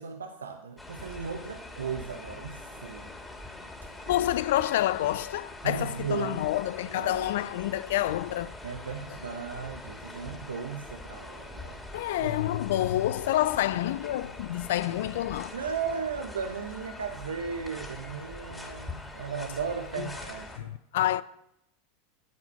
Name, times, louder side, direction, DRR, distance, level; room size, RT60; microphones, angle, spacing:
voice 1, 0.0-3.1 5.6-6.4 6.9-7.3 8.6-11.8 12.2-12.6 15.5-20.7, right 6 dB, 85° right, 1.0 m, -36 dB
sound 1, 0.8-20.6, left 2 dB, 10° left, 2.6 m, -43 dB
voice 2, 4.1-8.5 11.9-15.5 20.0-20.1 20.5-21.2, left 14 dB, 70° left, 0.5 m, -28 dB
12.5 x 8.5 x 5.6 m
hypercardioid pair, 90°, 0 cm